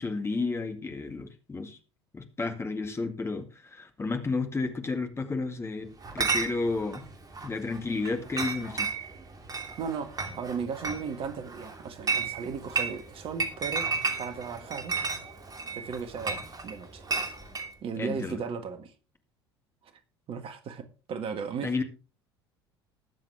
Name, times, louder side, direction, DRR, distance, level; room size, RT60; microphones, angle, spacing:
voice 1, 0.0-1.8 2.1-7.0 7.4-8.9 18.0-18.4 21.6-21.8, left 3 dB, 20° left, 2.0 m, -32 dB
Chatter / Chink clink, 6.0-17.7, right 4 dB, 30° right, 3.0 m, -33 dB
voice 2, 9.8-13.9 14.2-14.9 15.7-17.0 17.8-18.9 19.8-19.9 20.3-21.7, right 6 dB, 45° right, 1.7 m, -36 dB
20.5 x 7.3 x 3.5 m
figure-of-eight pair, 65°, 13 cm